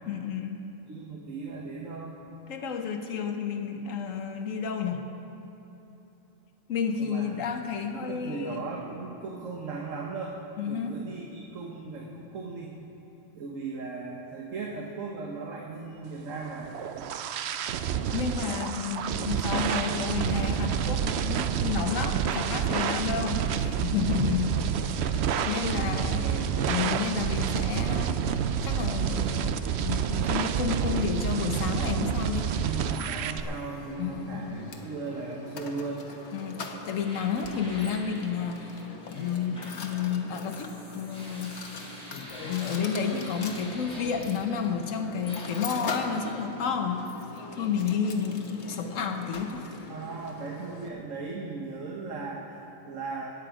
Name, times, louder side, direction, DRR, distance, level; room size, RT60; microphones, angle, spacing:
voice 1, 0.1-0.6 2.5-5.0 6.7-8.6 10.6-11.0 18.1-24.6 25.0-26.3 26.6-28.2 28.6-32.5 34.0-34.6 36.3-41.6 42.1-47.1 47.5-49.7, left 6 dB, 90° left, 5 dB, 1.3 m, -31 dB
voice 2, 0.9-2.2 7.0-7.3 7.8-10.4 10.6-12.7 13.4-16.8 23.0-23.3 23.9-24.4 25.8-26.6 32.6-36.0 49.9-53.3, right 4 dB, 85° right, -1 dB, 1.5 m, -37 dB
sound 1, 16.4-33.4, right 8 dB, 65° right, 0.8 m, -28 dB
Mechanisms, 32.7-50.9, left 4 dB, 60° left, 1.3 m, -42 dB
sound 2, 36.9-44.9 45.2-46.5, equal, 5° left, 2.9 m, -47 dB
21.0 x 9.2 x 5.0 m, 3.0 s
omnidirectional pair, 1.3 m